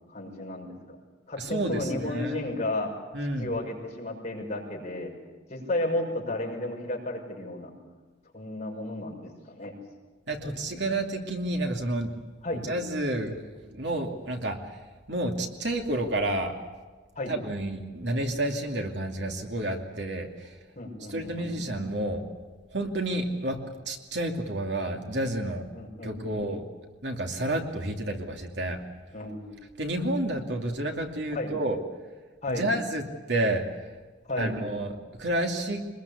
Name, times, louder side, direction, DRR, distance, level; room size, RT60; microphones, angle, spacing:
voice 1, 0.1-1.0 1.3-2.9 3.4-5.1 5.5-7.7 8.3-9.7 10.4-10.8 12.4-12.6 17.2-17.3 20.8-21.8 25.7-26.4 29.1-29.6 31.3-31.5 32.4-32.7 34.3-34.6, left 2 dB, 35° left, -1 dB, 6.0 m, -33 dB
voice 2, 1.4-2.4 3.1-3.5 10.3-12.1 12.5-14.6 15.1-16.5 17.3-20.5 21.1-22.2 22.7-23.6 23.9-25.7 26.0-26.6 27.0-28.8 29.8-31.8 32.5-33.9 34.4-35.8, right 1 dB, 65° right, 3 dB, 2.6 m, -30 dB
24.5 x 21.0 x 8.4 m, 1.3 s
head